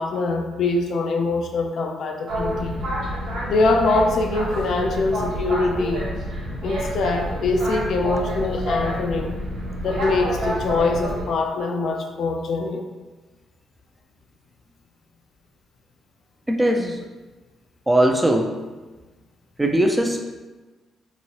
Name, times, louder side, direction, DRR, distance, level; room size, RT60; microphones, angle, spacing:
voice 1, 0.0-2.8 3.5-6.1 6.6-9.4 9.8-12.9, left 3 dB, 65° left, 4 dB, 0.4 m, -23 dB
Boat Water vehicle, 2.3-11.2, equal, 80° right, 1.0 m, -28 dB
voice 2, 16.5-17.0 17.9-18.5 19.6-20.4, right 1 dB, 10° right, 3 dB, 0.4 m, -20 dB
2.9 x 2.7 x 2.9 m, 1.2 s
cardioid pair, 90°, 0 cm